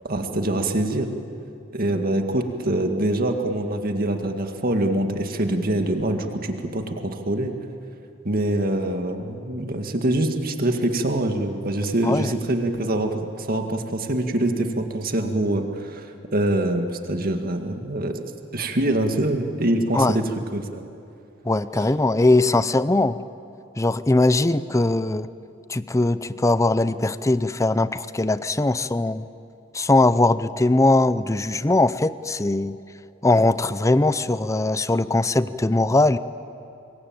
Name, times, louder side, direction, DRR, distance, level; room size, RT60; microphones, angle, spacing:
voice 1, 0.0-1.1 1.7-7.6 8.2-18.1 18.5-20.8, right 1 dB, 50° right, 5 dB, 2.0 m, -24 dB
voice 2, 21.4-23.2 23.8-25.3 25.7-29.3 29.7-32.8 33.2-36.2, left 2 dB, 15° left, 15 dB, 0.6 m, -20 dB
26.0 x 22.0 x 8.9 m, 2.7 s
head